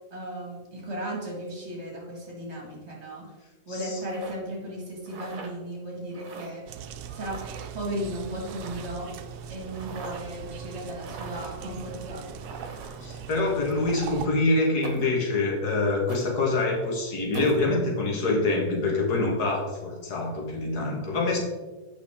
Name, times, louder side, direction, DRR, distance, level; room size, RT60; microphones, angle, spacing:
voice 1, 0.1-3.3 3.7-6.7 7.1-7.4 7.7-9.1 9.5-12.4, right 1 dB, 45° right, -2 dB, 2.2 m, -35 dB
voice 2, 3.7-4.0 13.0-21.4, left 2 dB, 85° left, -1 dB, 2.0 m, -25 dB
sound 1, 4.0-4.4 5.0-5.5 6.1-6.5 7.3-7.7 8.4-9.0 9.7-10.3 11.0-11.6 12.4-13.1 14.8-15.2 16.1-16.3 17.3-17.6, right 4 dB, 60° right, 1.5 m, -41 dB
sound 2, 6.7-14.3, right 7 dB, 80° right, 1.1 m, -40 dB
8.2 x 5.7 x 3.6 m, 1.2 s
omnidirectional pair, 1.6 m